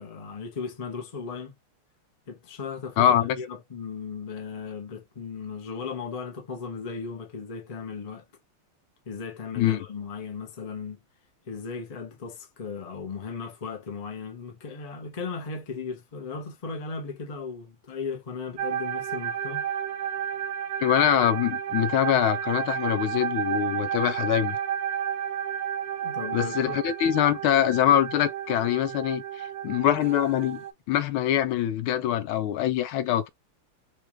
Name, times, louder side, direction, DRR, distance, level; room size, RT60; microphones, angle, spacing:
voice 1, 0.0-1.6 2.3-8.2 9.1-11.0 11.5-19.7 26.0-26.8, left 5 dB, 40° left, 0.5 m, -36 dB
voice 2, 3.0-3.4 9.6-9.8 20.8-24.6 26.3-30.6 30.9-33.3, left 11 dB, 85° left, 1.4 m, -24 dB
sound 1, 18.6-30.7, right 9 dB, 70° right, 0.9 m, -31 dB
4.5 x 2.4 x 3.0 m
omnidirectional pair, 2.3 m